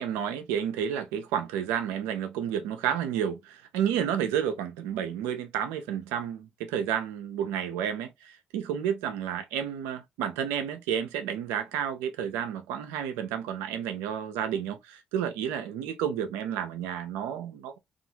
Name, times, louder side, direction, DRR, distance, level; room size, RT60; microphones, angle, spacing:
voice 1, 0.0-17.8, right 9 dB, 90° right, 0.5 m, -31 dB
2.7 x 2.4 x 2.6 m
supercardioid pair, 50°, 4 cm